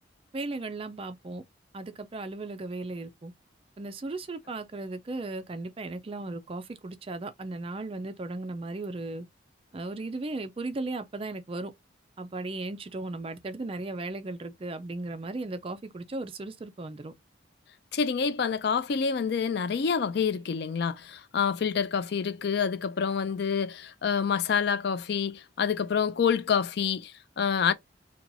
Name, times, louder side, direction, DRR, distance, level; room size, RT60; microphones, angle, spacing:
voice 1, 0.3-1.4 1.7-3.3 3.8-9.3 9.7-11.7 12.2-17.1, right 2 dB, 30° right, 0.3 m, -36 dB
voice 2, 17.9-27.7, left 6 dB, 55° left, 0.4 m, -27 dB
2.8 x 2.3 x 3.9 m
head